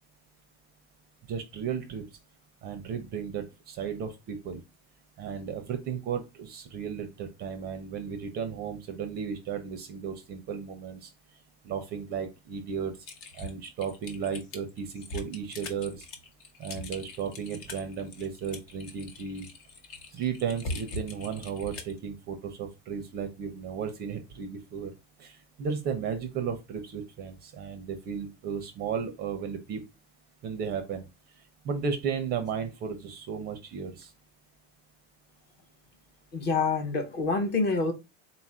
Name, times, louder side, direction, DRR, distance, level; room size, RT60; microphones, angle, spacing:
voice 1, 1.3-2.0 2.6-4.6 5.2-11.1 11.6-12.9 13.3-16.1 16.6-19.5 20.1-24.9 25.2-29.8 30.4-31.1 31.4-34.1, right 7 dB, 30° right, 0.5 m, -34 dB
Typing, 13.0-22.0, left 2 dB, 60° left, 1.0 m, -41 dB
voice 2, 36.3-37.9, left 4 dB, 30° left, 0.6 m, -27 dB
3.9 x 2.4 x 4.1 m
cardioid pair, 160°, 35 cm